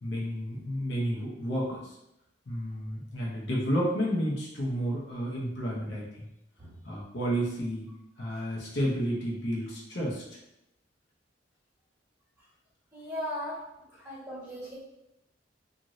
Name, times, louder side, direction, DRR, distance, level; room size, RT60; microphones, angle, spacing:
voice 1, 0.0-1.9 2.5-6.3 6.8-7.9 8.2-10.2, equal, 70° left, -4 dB, 0.8 m, -31 dB
voice 2, 12.9-13.6 14.0-14.7, left 1 dB, 15° right, -9 dB, 1.3 m, -38 dB
2.6 x 2.5 x 3.0 m, 0.86 s
head